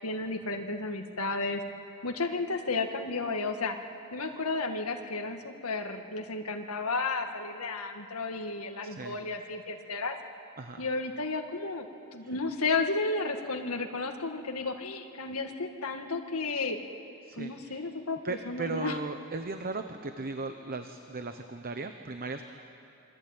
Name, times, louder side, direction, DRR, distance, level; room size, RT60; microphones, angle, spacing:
voice 1, 0.0-1.6 2.0-3.8 4.1-10.2 10.8-11.9 12.1-16.8 17.4-19.0, left 3 dB, 75° left, 4 dB, 2.0 m, -33 dB
voice 2, 8.8-9.2 10.6-10.8 12.2-12.3 17.2-17.9 18.2-22.4, right 3 dB, 45° right, 7 dB, 1.1 m, -37 dB
26.5 x 23.5 x 9.0 m, 2.7 s
head